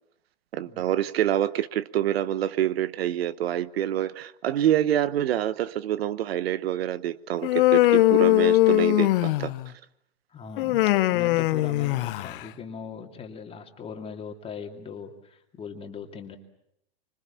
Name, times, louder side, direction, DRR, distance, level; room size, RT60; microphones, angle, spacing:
voice 1, 0.5-9.5, right 11 dB, 75° right, 1.1 m, -26 dB
Human voice, 7.4-9.7 10.6-12.4, left 16 dB, 55° left, 1.1 m, -21 dB
voice 2, 10.3-16.4, left 6 dB, 20° left, 2.7 m, -40 dB
26.0 x 25.0 x 7.3 m
hypercardioid pair, 125°, 31 cm